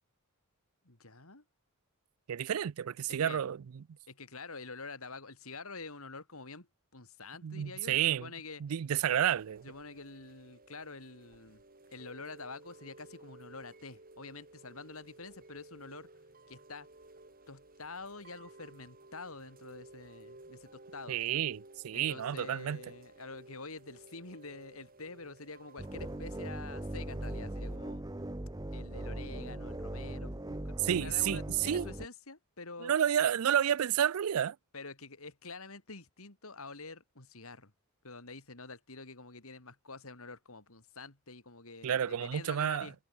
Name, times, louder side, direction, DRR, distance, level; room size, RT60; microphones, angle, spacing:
voice 1, 0.8-1.4 3.1-3.4 4.1-6.7 6.9-8.6 9.6-11.6 11.9-16.1 16.5-16.9 17.5-21.2 21.9-28.0 28.7-33.0 34.7-37.7 38.0-43.0, left 3 dB, 70° left, 3.6 m, -47 dB
voice 2, 2.3-3.8 7.4-8.3 8.6-9.7 21.1-22.8 30.8-31.9 32.8-34.6 41.8-42.9, right 9 dB, 75° right, 0.4 m, -30 dB
Chime / Rain, 9.4-27.8, right 2 dB, 40° right, 3.8 m, -56 dB
sound 1, 25.8-32.1, right 1 dB, 15° right, 0.9 m, -39 dB
head